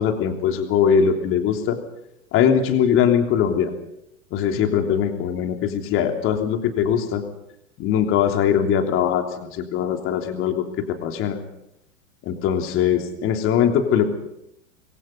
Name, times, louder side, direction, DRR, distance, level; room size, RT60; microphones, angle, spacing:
voice 1, 0.0-1.8 2.3-3.7 4.3-7.2 7.8-11.4 12.2-14.1, left 8 dB, 30° left, 4 dB, 3.4 m, -21 dB
27.0 x 22.0 x 5.5 m, 0.81 s
figure-of-eight pair, 95°, 40 cm